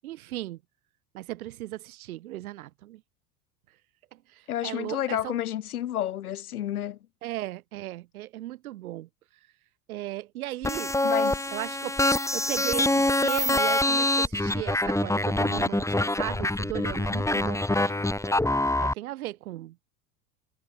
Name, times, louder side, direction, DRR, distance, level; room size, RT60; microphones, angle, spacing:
voice 1, 0.0-0.6 1.1-3.0 4.6-5.3 7.2-9.1 9.9-10.9 11.5-12.0 12.3-15.9 16.2-18.0 18.8-19.7, right 15 dB, 65° right, 2.3 m, -36 dB
voice 2, 4.5-7.0 11.0-11.4, left 12 dB, 70° left, 4.5 m, -30 dB
sound 1, 10.6-18.9, left 1 dB, 5° left, 7.2 m, -25 dB
figure-of-eight pair, 70°, 46 cm